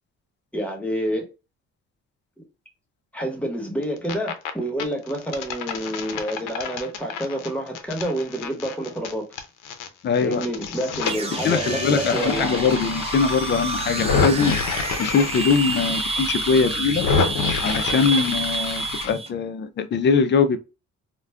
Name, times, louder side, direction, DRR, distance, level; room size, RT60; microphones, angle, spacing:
voice 1, 0.5-1.2 3.1-9.2 10.2-12.6, equal, 5° left, 1.0 m, -28 dB
sound 1, 3.8-4.5 4.8-9.9 10.1-19.1, left 5 dB, 85° left, 0.6 m, -28 dB
voice 2, 10.0-10.4 11.4-14.6 15.0-17.1 17.6-20.6, left 5 dB, 40° left, 0.4 m, -22 dB
sound 2, 11.0-19.3, right 4 dB, 20° right, 0.4 m, -29 dB
2.3 x 2.2 x 3.4 m
cardioid pair, 90°, 30 cm